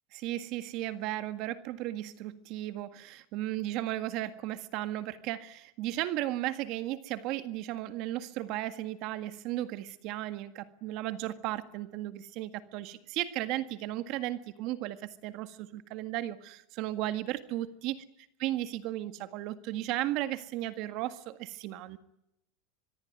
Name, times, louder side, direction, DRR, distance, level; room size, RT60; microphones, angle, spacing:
voice 1, 0.1-18.0 18.4-22.0, right 14 dB, 50° right, 11 dB, 1.8 m, -35 dB
24.5 x 21.5 x 9.4 m, 0.84 s
supercardioid pair, 145°, 0 cm